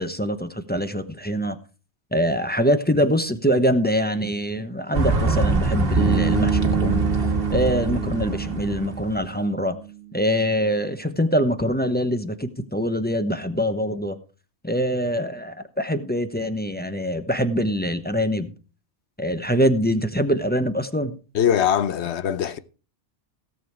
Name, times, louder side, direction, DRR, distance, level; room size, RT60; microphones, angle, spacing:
voice 1, 0.0-1.6 2.1-9.8 10.1-14.2 14.6-18.5 19.2-21.2, equal, 10° left, 0.9 m, -24 dB
sound 1, 4.9-9.3, right 2 dB, 55° right, 1.7 m, -24 dB
Bass guitar, 6.0-10.0, right 7 dB, 70° right, 1.4 m, -27 dB
voice 2, 21.3-22.6, left 9 dB, 70° left, 1.1 m, -21 dB
17.0 x 7.2 x 4.7 m
omnidirectional pair, 1.2 m